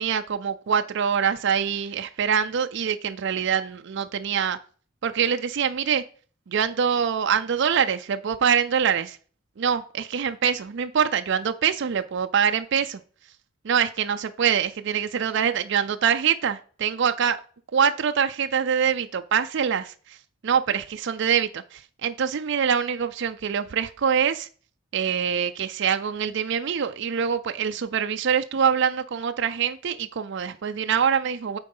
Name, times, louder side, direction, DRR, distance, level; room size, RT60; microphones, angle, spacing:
voice 1, 0.0-4.6 5.0-6.0 6.5-9.2 9.6-13.0 13.6-17.4 17.7-20.2 20.4-24.5 24.9-31.6, right 7 dB, 60° right, 0.4 m, -24 dB
8.9 x 3.8 x 5.4 m
head